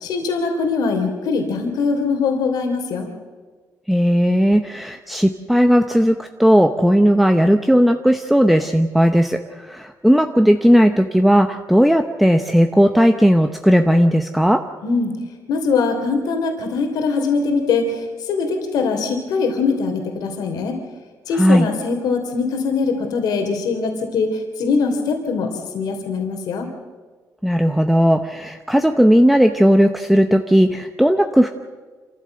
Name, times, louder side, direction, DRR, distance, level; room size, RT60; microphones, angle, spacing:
voice 1, 0.0-3.1 14.8-15.1 15.5-20.8 21.3-25.5 25.7-26.7, left 4 dB, 85° left, 4 dB, 3.2 m, -22 dB
voice 2, 3.9-14.6 21.3-21.7 27.4-31.5, equal, ahead, 6 dB, 0.8 m, -16 dB
27.0 x 15.0 x 7.8 m, 1.4 s
cardioid pair, 160°, 6 cm